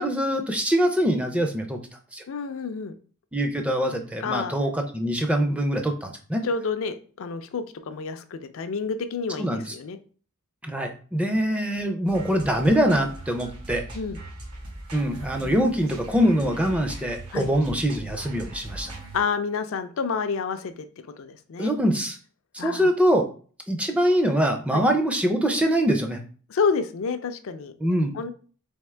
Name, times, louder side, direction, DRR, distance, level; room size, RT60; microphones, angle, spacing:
voice 1, 0.0-1.8 2.1-2.2 3.3-6.4 9.4-9.7 10.6-13.8 14.9-18.9 21.6-22.2 22.5-23.3 23.7-26.2 27.8-28.2, equal, 5° right, 4 dB, 0.4 m, -23 dB
voice 2, 2.3-2.9 4.2-4.5 6.4-10.0 13.9-14.2 17.3-17.5 19.1-20.9 21.1-21.7 22.6-22.9 24.7-24.9 26.5-27.7 28.1-28.3, left 5 dB, 65° left, 9 dB, 0.4 m, -29 dB
sound 1, 12.1-19.2, right 1 dB, 70° right, 1.1 m, -40 dB
3.5 x 3.5 x 3.2 m, 0.41 s
head